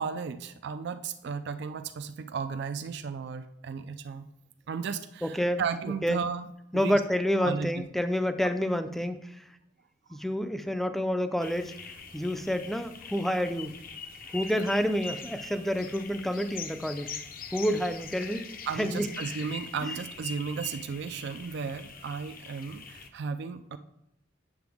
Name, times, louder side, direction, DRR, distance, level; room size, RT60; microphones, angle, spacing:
voice 1, 0.0-4.3 4.7-6.4 6.7-7.0 7.4-7.7 18.7-23.8, right 6 dB, 60° right, 9 dB, 0.4 m, -34 dB
voice 2, 5.2-5.6 6.0-6.2 6.7-9.4 10.1-11.7 12.1-13.8 14.3-17.2 17.5-18.4 18.7-19.1, equal, ahead, 9 dB, 0.4 m, -28 dB
sound 1, 11.4-23.1, left 4 dB, 50° left, 0.7 m, -43 dB
7.8 x 6.8 x 3.5 m, 0.79 s
head